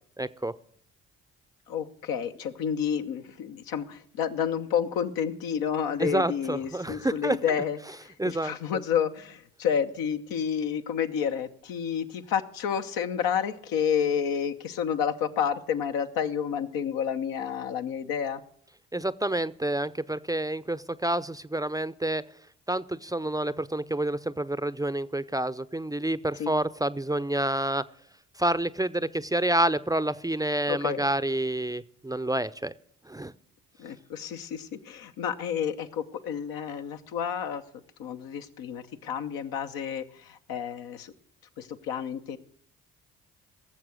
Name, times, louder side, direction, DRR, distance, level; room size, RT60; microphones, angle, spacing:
voice 1, 0.2-0.5 6.0-7.4 8.2-8.5 18.9-22.2 22.7-27.8 28.4-32.7 33.1-33.3, right 1 dB, 10° right, 16 dB, 0.5 m, -28 dB
voice 2, 1.7-18.4 26.4-26.5 30.7-31.1 33.8-41.1 41.6-42.4, left 8 dB, 75° left, 6 dB, 0.9 m, -30 dB
17.5 x 7.2 x 6.4 m, 0.63 s
hypercardioid pair, 45°, 36 cm